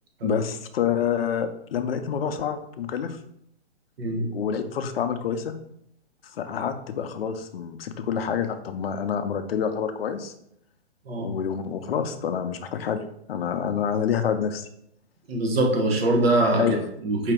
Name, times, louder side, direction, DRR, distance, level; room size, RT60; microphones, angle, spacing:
voice 1, 0.2-3.2 4.3-5.6 6.3-10.3 11.2-13.0 13.3-14.7 16.6-16.9, left 8 dB, 60° left, 8 dB, 0.6 m, -27 dB
voice 2, 4.0-4.3 11.1-11.3 15.3-16.8 17.0-17.3, right 2 dB, 60° right, 2 dB, 1.1 m, -23 dB
4.9 x 2.8 x 3.4 m, 0.74 s
hypercardioid pair, 150°, 34 cm